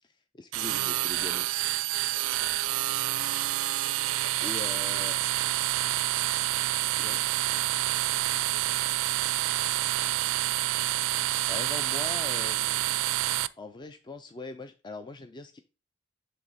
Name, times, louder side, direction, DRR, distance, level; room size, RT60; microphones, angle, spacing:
voice 1, 0.0-1.5 4.4-5.2 7.0-7.7 11.0-15.6, left 3 dB, 20° left, 8 dB, 0.4 m, -42 dB
sound 1, 0.5-13.5, right 15 dB, 75° right, 0.3 m, -28 dB
voice 2, 2.1-3.0 3.7-4.5 5.5-5.7 8.4-9.6, left 1 dB, 60° left, 2 dB, 2.1 m, -56 dB
9.1 x 3.4 x 3.9 m, 0.33 s
head